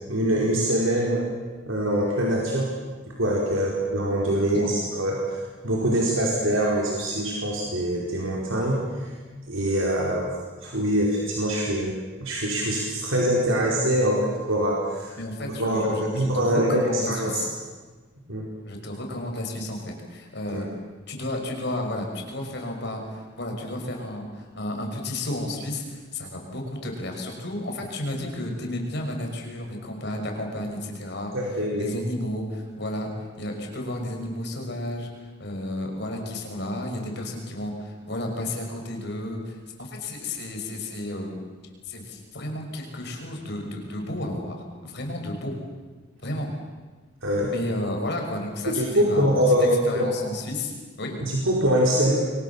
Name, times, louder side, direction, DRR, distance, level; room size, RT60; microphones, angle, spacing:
voice 1, 0.1-1.2 1.6-2.7 3.2-9.1 9.5-10.3 10.6-11.9 12.2-15.2 15.6-17.4 18.3-18.5 20.5-20.6 31.3-31.9 47.2-47.5 48.7-50.1 51.2-52.2, equal, 80° right, -2 dB, 4.8 m, -24 dB
voice 2, 4.3-4.7 15.2-17.5 18.6-20.7 21.1-31.3 31.7-33.1 33.4-35.1 35.4-41.4 41.8-45.6 46.2-46.5 47.5-49.2 49.7-50.7 51.0-51.2, left 1 dB, 55° left, 2 dB, 5.9 m, -32 dB
29.0 x 23.5 x 7.2 m, 1.4 s
head